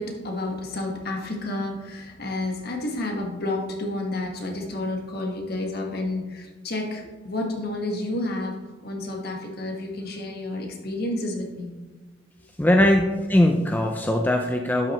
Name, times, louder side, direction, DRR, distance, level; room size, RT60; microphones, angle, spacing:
voice 1, 0.0-11.7, left 2 dB, 55° left, 2 dB, 1.5 m, -30 dB
voice 2, 12.6-14.9, left 1 dB, 10° left, 3 dB, 0.5 m, -20 dB
11.5 x 5.9 x 3.1 m, 1.3 s
head